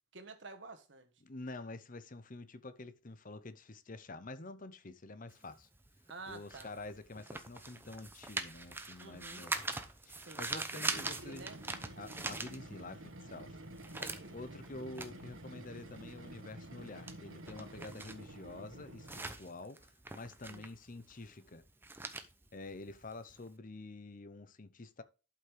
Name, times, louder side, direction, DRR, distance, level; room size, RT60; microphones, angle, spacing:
voice 1, 0.1-1.1 6.1-6.7 9.0-9.5 10.3-11.6 14.0-14.4 20.5-20.7, right 3 dB, 60° right, 1.5 m, -50 dB
voice 2, 1.2-5.7 6.3-9.6 10.1-11.5 12.0-13.6 14.3-21.6 22.5-25.0, left 2 dB, 40° left, 0.8 m, -48 dB
sound 1, 5.3-13.1 13.4-23.5, right 2 dB, 10° right, 0.8 m, -43 dB
sound 2, 10.6-19.4, right 1 dB, 85° right, 1.6 m, -50 dB
11.5 x 5.6 x 3.4 m
head